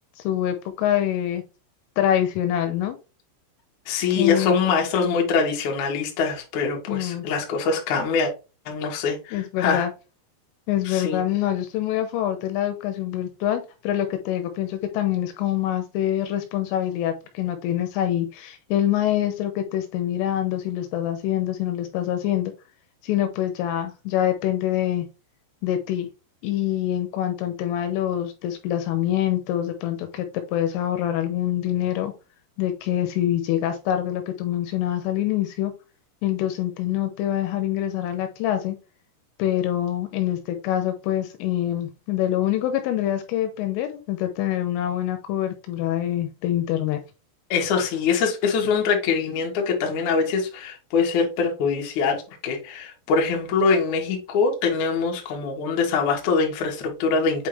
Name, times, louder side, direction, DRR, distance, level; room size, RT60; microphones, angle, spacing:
voice 1, 0.2-1.4 2.0-3.0 4.2-4.6 6.9-7.3 9.3-9.9 10.7-22.5 23.0-25.1 25.6-26.1 26.4-32.1 32.6-35.7 36.2-38.8 39.4-47.0, left 12 dB, 80° left, 3.2 m, -25 dB
voice 2, 3.9-8.3 8.7-9.9 10.9-11.3 47.5-57.5, left 5 dB, 60° left, 2.0 m, -23 dB
8.5 x 3.6 x 3.2 m
omnidirectional pair, 6.0 m